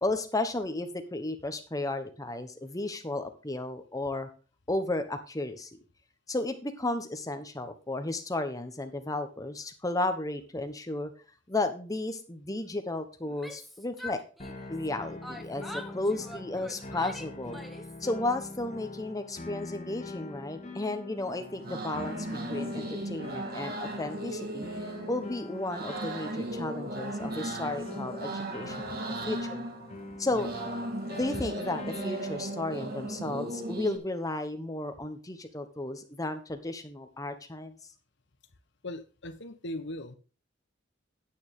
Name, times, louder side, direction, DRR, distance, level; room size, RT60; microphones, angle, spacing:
voice 1, 0.0-4.3 4.7-5.7 6.3-11.1 11.5-14.2 14.7-17.6 18.0-22.2 22.5-24.7 25.1-29.7 30.2-30.5 31.1-37.8, left 2 dB, 20° left, 7 dB, 1.1 m, -33 dB
Yell, 13.3-14.9 15.2-18.0, left 1 dB, ahead, 0.9 m, -44 dB
sound 1, 14.4-33.6, left 3 dB, 35° left, 1.8 m, -44 dB
sound 2, 21.2-34.0, right 1 dB, 50° right, 1.7 m, -37 dB
voice 2, 38.8-40.2, left 1 dB, 65° left, 10 dB, 1.1 m, -39 dB
9.4 x 8.8 x 3.7 m, 0.36 s
head